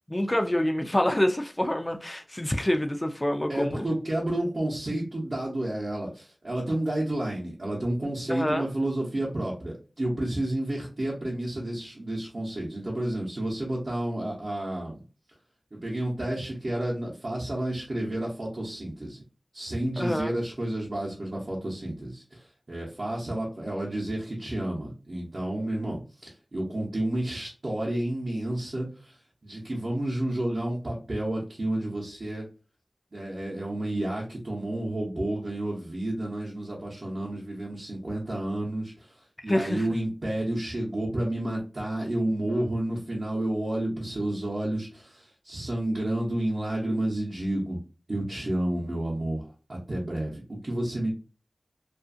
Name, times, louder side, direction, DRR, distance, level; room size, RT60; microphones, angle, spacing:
voice 1, 0.1-3.9 8.3-8.7 20.0-20.3 39.5-39.8, left 1 dB, 25° left, 0.3 m, -26 dB
voice 2, 3.5-15.0 15.7-19.2 19.5-32.4 33.1-47.8 48.1-51.1, right 1 dB, 55° right, 0.7 m, -30 dB
2.5 x 2.4 x 2.5 m
cardioid pair, 40°, 0 cm